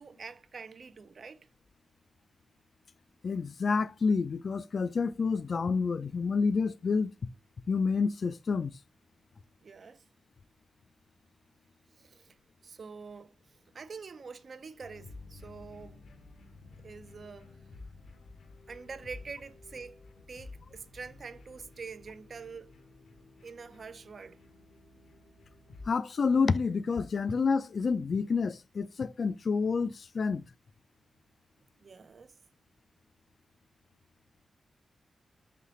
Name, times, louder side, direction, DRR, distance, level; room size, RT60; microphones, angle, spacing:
voice 1, 0.0-1.5 9.6-10.0 11.9-12.3 12.6-13.4 13.7-16.0 16.8-17.5 18.7-20.0 20.3-22.7 23.4-24.4 31.8-32.4, right 5 dB, 55° right, 0.4 m, -45 dB
voice 2, 3.2-7.1 7.7-8.7 25.9-30.5, left 5 dB, 55° left, 0.3 m, -28 dB
sound 1, 14.8-25.9, left 3 dB, 80° left, 0.8 m, -52 dB
4.0 x 3.2 x 3.0 m
wide cardioid pair, 100°, 0 cm